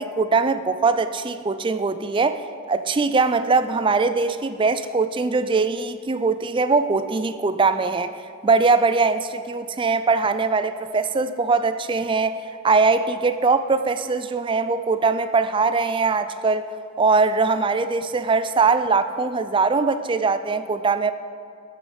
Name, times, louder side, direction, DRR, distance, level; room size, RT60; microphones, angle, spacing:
voice 1, 0.0-8.1 8.4-12.4 12.6-16.7 17.0-21.1, right 4 dB, 25° right, 11 dB, 0.4 m, -21 dB
12.5 x 6.6 x 6.4 m, 2.3 s
head